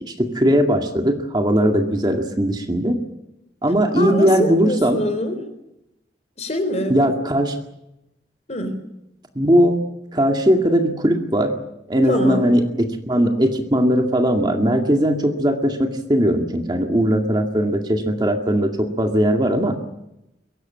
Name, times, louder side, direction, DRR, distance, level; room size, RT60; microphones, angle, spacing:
voice 1, 0.0-3.0 3.6-5.0 6.9-7.6 9.4-9.8 10.1-11.5 11.9-19.8, equal, 25° right, 4 dB, 2.1 m, -19 dB
voice 2, 3.9-5.4 6.4-6.9 8.5-8.8 12.1-12.5, left 1 dB, 40° left, 8 dB, 4.0 m, -24 dB
23.0 x 17.5 x 8.8 m, 0.86 s
head